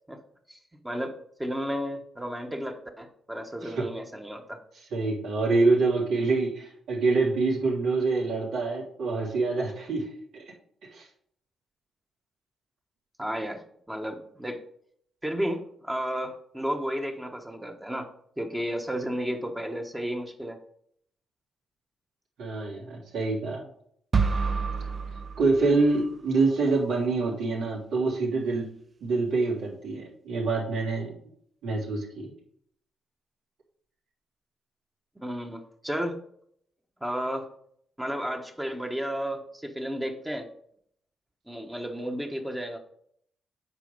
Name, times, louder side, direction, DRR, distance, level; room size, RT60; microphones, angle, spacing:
voice 1, 0.8-4.6 13.2-13.6 13.9-14.6 15.2-18.1 18.4-20.6 35.2-36.2 37.0-37.5 38.0-40.5 41.5-42.8, equal, 10° right, 3 dB, 1.0 m, -33 dB
voice 2, 4.9-10.4 10.9-11.1 22.4-23.7 25.4-28.7 29.0-31.1 31.6-32.3, right 3 dB, 85° right, -5 dB, 3.3 m, -26 dB
sound 1, 24.1-26.2, right 5 dB, 30° right, 0.5 m, -28 dB
8.2 x 4.9 x 5.2 m, 0.66 s
cardioid pair, 110°, 0 cm